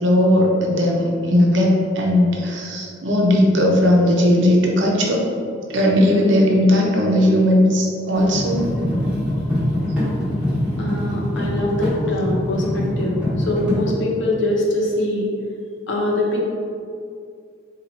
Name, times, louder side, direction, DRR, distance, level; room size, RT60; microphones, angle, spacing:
voice 1, 0.0-5.2 5.7-9.0, left 1 dB, 70° right, -1 dB, 0.7 m, -17 dB
sound 1, 8.1-13.8, left 1 dB, 5° right, 1.1 m, -23 dB
voice 2, 10.8-15.3 15.9-16.4, left 1 dB, 70° left, -2 dB, 0.8 m, -23 dB
4.3 x 2.4 x 4.1 m, 2.3 s
head